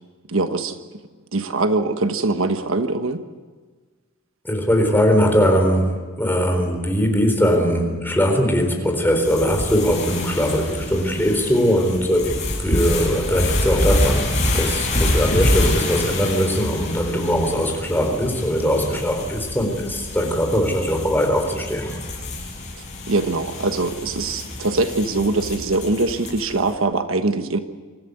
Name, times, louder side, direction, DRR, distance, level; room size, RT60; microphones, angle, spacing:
voice 1, 0.3-0.8 1.3-3.2 23.1-27.6, right 2 dB, 70° right, 8 dB, 1.3 m, -22 dB
voice 2, 4.4-12.3 12.6-14.3 14.5-22.0, equal, 10° left, 3 dB, 4.0 m, -20 dB
sound 1, 9.2-26.6, left 1 dB, 35° left, 6.9 m, -26 dB
sound 2, 15.3-19.3, equal, 55° left, 2.0 m, -32 dB
25.0 x 15.0 x 9.6 m, 1.4 s
head